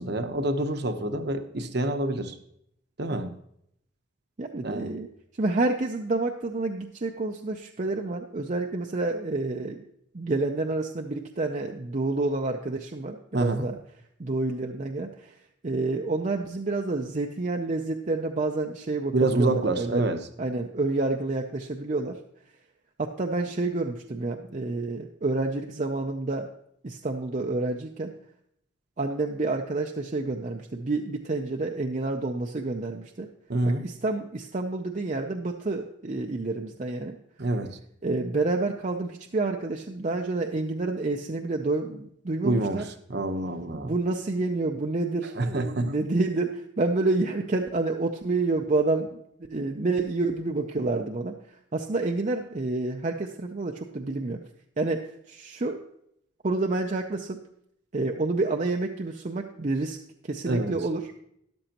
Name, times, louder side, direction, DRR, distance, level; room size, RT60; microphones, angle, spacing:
voice 1, 0.0-2.4 3.0-3.3 4.6-4.9 13.3-13.7 19.1-20.2 33.5-33.8 37.4-37.8 42.4-43.9 45.4-45.9 60.5-60.8, right 2 dB, 55° right, 7 dB, 0.9 m, -27 dB
voice 2, 4.4-5.1 5.4-9.8 10.1-13.8 14.2-15.4 15.6-20.0 20.4-22.2 23.0-26.5 26.8-28.1 29.0-33.3 33.7-37.2 38.0-42.8 43.7-49.2 49.5-51.4 51.7-54.4 54.8-55.8 56.4-57.4 57.9-60.0 60.2-61.0, right 2 dB, 40° right, 3 dB, 0.6 m, -29 dB
13.0 x 11.0 x 2.9 m, 0.74 s
head